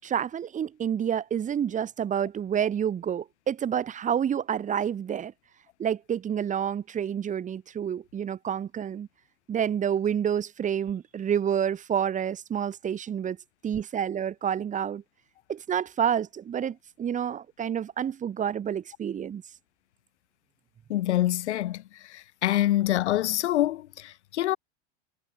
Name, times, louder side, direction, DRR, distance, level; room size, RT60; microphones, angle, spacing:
voice 1, 0.0-5.3 5.8-9.1 9.5-13.4 13.6-15.0 15.5-19.4, right 8 dB, 20° right, 7.8 m, -29 dB
voice 2, 20.9-21.8 22.1-24.6, left 14 dB, 85° left, 3.3 m, -26 dB
supercardioid pair, 145°, 33 cm